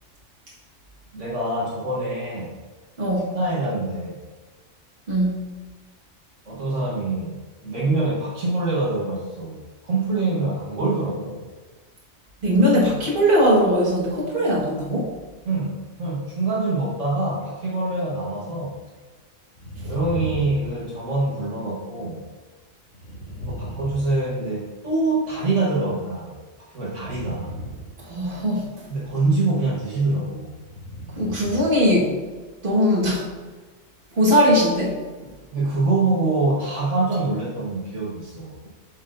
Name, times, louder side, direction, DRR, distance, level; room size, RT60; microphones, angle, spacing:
voice 1, 1.1-2.5 3.3-4.2 6.4-11.4 15.4-18.8 19.8-22.2 23.4-26.3 26.7-27.5 28.9-30.5 35.5-38.7, right 2 dB, 65° right, -6 dB, 1.7 m, -25 dB
voice 2, 3.0-3.4 5.1-5.4 12.4-15.1 28.1-28.7 31.2-32.2 32.6-33.2 34.2-35.0, equal, 40° right, -5 dB, 1.8 m, -20 dB
sound 1, 19.5-21.4 22.9-24.8 26.9-28.6 30.6-31.9 32.1-32.2, right 1 dB, 75° left, 2.5 m, -36 dB
7.6 x 6.4 x 2.6 m, 1.3 s
omnidirectional pair, 1.4 m